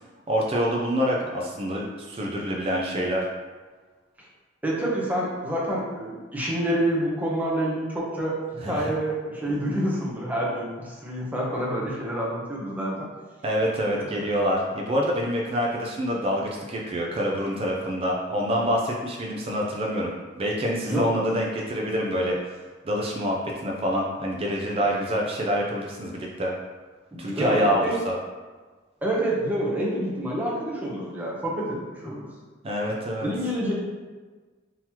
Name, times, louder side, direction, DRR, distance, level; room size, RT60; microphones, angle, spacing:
voice 1, 0.3-3.3 8.6-8.9 13.4-22.6 22.8-26.5 27.2-28.1 32.6-33.3, equal, 30° right, -2 dB, 0.4 m, -26 dB
voice 2, 4.6-13.1 13.9-14.3 20.9-21.0 27.1-28.0 29.0-32.3 33.2-33.8, right 1 dB, 10° right, -5 dB, 0.7 m, -28 dB
3.8 x 2.9 x 2.8 m, 1.4 s
head